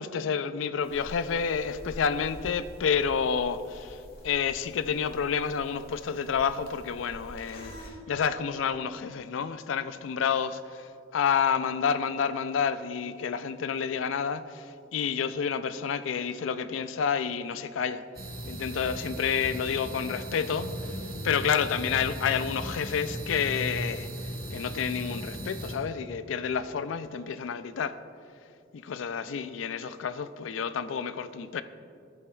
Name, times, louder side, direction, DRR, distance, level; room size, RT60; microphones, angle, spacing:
voice 1, 0.0-18.0 18.5-27.9 28.7-31.6, left 6 dB, 75° left, 13 dB, 0.4 m, -29 dB
sound 1, 0.8-7.9, equal, 50° left, 1.5 m, -47 dB
sound 2, 18.1-25.7, right 1 dB, 50° right, 1.2 m, -37 dB
13.0 x 7.8 x 2.3 m, 2.5 s
head